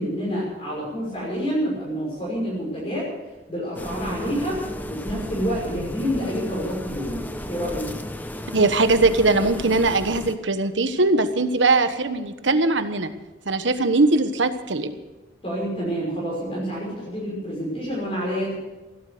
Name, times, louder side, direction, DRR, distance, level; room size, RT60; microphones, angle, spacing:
voice 1, 0.0-3.1 3.5-4.6 4.9-7.9 15.4-18.5, equal, 30° left, -5 dB, 5.8 m, -28 dB
sound 1, 3.8-10.4, left 1 dB, 10° left, 0.8 m, -34 dB
voice 2, 8.5-13.1 13.5-14.9, right 3 dB, 85° right, 9 dB, 1.3 m, -20 dB
16.0 x 12.0 x 6.7 m, 1.1 s
head